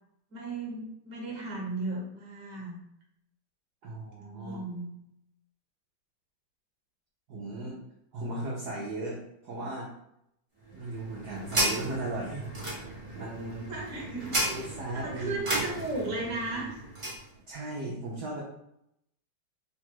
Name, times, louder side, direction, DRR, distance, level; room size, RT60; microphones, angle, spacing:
voice 1, 0.3-2.8 4.2-4.9 13.6-14.4 14.9-16.8, right 2 dB, 45° right, -3 dB, 1.5 m, -35 dB
voice 2, 3.8-4.6 7.3-7.8 8.1-9.9 10.7-12.5 13.1-13.7 14.5-15.4 17.5-18.4, right 2 dB, 65° right, -5 dB, 1.1 m, -36 dB
sound 1, 10.6-17.2, right 1 dB, 25° right, 0.7 m, -34 dB
3.9 x 2.4 x 4.5 m, 0.78 s
omnidirectional pair, 2.3 m